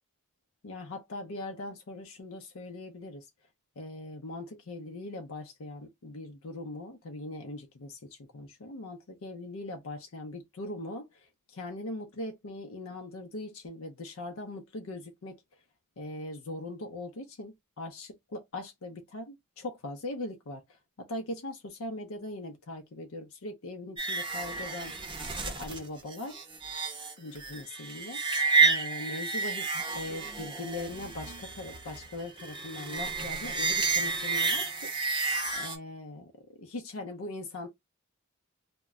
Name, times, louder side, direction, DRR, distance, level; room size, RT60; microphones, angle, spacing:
voice 1, 0.6-3.3 3.8-15.4 16.0-25.0 25.3-26.4 27.2-28.2 28.6-34.9 35.6-36.3 36.6-37.7, left 2 dB, 70° left, 0.5 m, -40 dB
sound 1, 24.0-35.8, right 4 dB, 20° right, 0.7 m, -30 dB
2.1 x 2.0 x 3.5 m
head